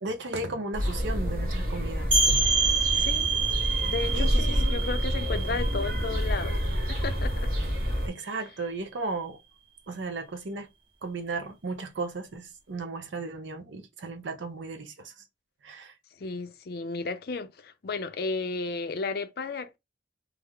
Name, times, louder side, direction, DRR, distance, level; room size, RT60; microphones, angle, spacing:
voice 1, 0.0-2.4 4.1-4.7 8.0-9.4 9.9-10.7 11.0-15.1 15.6-15.9, right 3 dB, 85° right, 0.7 m, -35 dB
sound 1, 0.7-8.1, equal, 50° right, 1.0 m, -28 dB
sound 2, 2.1-7.6, right 5 dB, 30° right, 0.8 m, -28 dB
voice 2, 2.9-3.3 3.8-6.6 6.9-7.5 16.2-19.8, left 4 dB, 55° left, 0.4 m, -33 dB
3.2 x 2.0 x 3.5 m
head